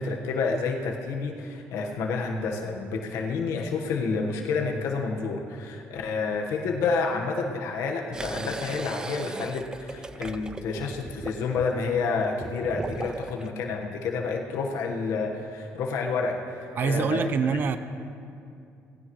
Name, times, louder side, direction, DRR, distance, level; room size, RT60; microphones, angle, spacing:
voice 1, 0.0-17.2 17.5-17.6, left 4 dB, 85° left, 2 dB, 1.4 m, -29 dB
sound 1, 8.1-13.5, right 3 dB, 15° right, 0.4 m, -37 dB
voice 2, 16.8-17.8, right 5 dB, 45° right, 11 dB, 0.7 m, -25 dB
18.0 x 16.5 x 3.2 m, 2.5 s
cardioid pair, 145°, 5 cm